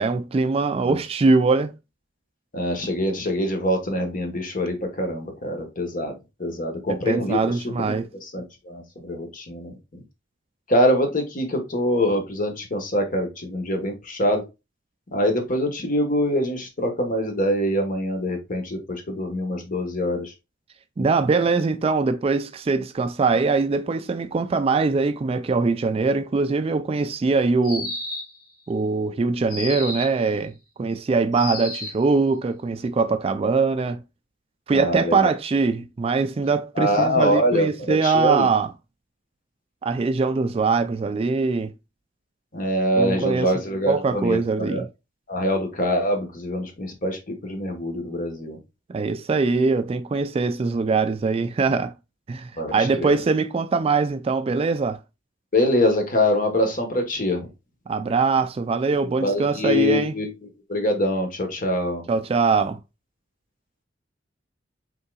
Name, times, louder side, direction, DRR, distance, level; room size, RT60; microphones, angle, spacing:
voice 1, 0.0-1.7 6.9-8.1 21.0-27.9 28.7-30.5 30.8-34.0 34.7-38.7 39.8-41.7 43.0-43.5 43.9-44.9 48.9-51.9 52.3-55.0 57.9-60.1 62.1-62.8, right 4 dB, 30° right, 0.3 m, -22 dB
voice 2, 2.5-7.4 7.8-7.9 8.3-10.0 10.7-14.4 15.1-20.3 34.7-35.3 36.8-38.5 42.5-44.8 45.3-48.6 52.6-52.7 53.0-53.2 55.5-57.5 59.2-60.3 60.7-62.0, left 1 dB, 45° left, 1.3 m, -24 dB
sound 1, 27.6-28.4 29.5-30.2 31.3-32.1, left 2 dB, 25° left, 2.3 m, -32 dB
5.4 x 3.8 x 2.3 m
head